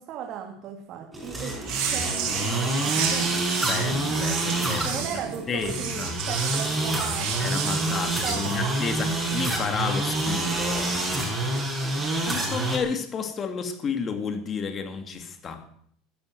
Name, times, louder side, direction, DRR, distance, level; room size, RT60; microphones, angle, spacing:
voice 1, 0.0-4.0 4.8-8.8 11.8-12.3, right 9 dB, 50° right, 3 dB, 2.3 m, -38 dB
sound 1, 1.1-12.8, right 2 dB, 10° right, 5.3 m, -27 dB
sound 2, 1.6-8.6, right 7 dB, 70° right, 6.3 m, -31 dB
voice 2, 3.7-5.0 5.5-6.2 7.4-11.4 12.3-15.6, left 5 dB, 30° left, 7 dB, 2.3 m, -31 dB
14.5 x 9.9 x 8.0 m, 0.65 s
supercardioid pair, 130°, 0 cm